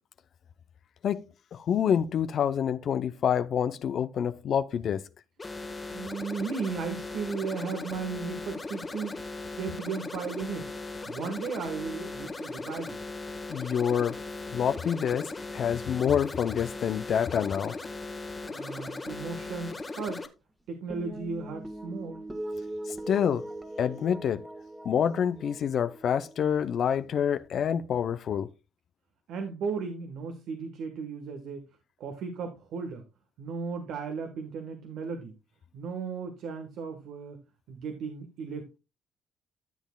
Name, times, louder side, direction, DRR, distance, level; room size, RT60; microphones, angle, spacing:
voice 1, 1.0-5.0 13.5-14.2 14.5-17.8 22.9-23.5 23.8-24.5 24.8-28.5, left 8 dB, 60° left, 0.5 m, -27 dB
sound 1, 5.4-20.3, left 3 dB, 25° left, 1.4 m, -38 dB
voice 2, 5.9-9.2 9.6-10.7 11.1-13.0 18.5-20.2 20.7-22.2 29.3-31.6 32.0-33.0 33.4-35.3 35.7-37.4 37.7-38.7, right 5 dB, 75° right, 1.3 m, -35 dB
sound 2, 20.9-27.5, right 1 dB, 15° right, 1.4 m, -41 dB
14.0 x 7.2 x 2.3 m
supercardioid pair, 70°, 0 cm